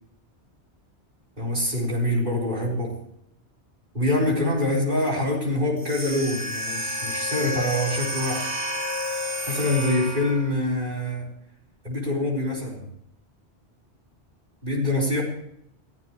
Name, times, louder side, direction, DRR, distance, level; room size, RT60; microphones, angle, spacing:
voice 1, 1.4-3.0 3.9-8.5 9.5-11.3 11.8-12.8 14.6-15.2, left 1 dB, 45° right, -2 dB, 4.8 m, -25 dB
sound 1, 5.8-10.5, left 1 dB, 90° right, 2.9 m, -30 dB
22.5 x 15.0 x 3.2 m, 0.75 s
omnidirectional pair, 1.2 m